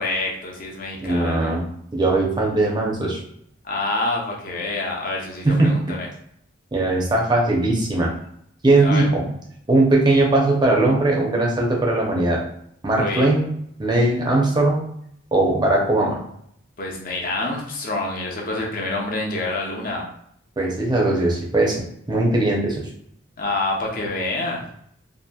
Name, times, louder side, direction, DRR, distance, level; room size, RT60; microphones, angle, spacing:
voice 1, 0.0-1.6 3.6-6.1 8.8-9.1 13.0-13.2 16.8-20.0 23.4-24.6, left 2 dB, 40° left, -1 dB, 0.6 m, -27 dB
voice 2, 1.0-1.7 1.9-3.2 5.4-5.8 6.7-8.1 8.6-9.2 9.7-12.4 12.8-13.5 13.8-14.9 15.3-16.2 20.6-21.8 22.1-22.9, right 2 dB, 20° right, -2 dB, 0.5 m, -19 dB
2.8 x 2.5 x 2.2 m, 0.69 s
head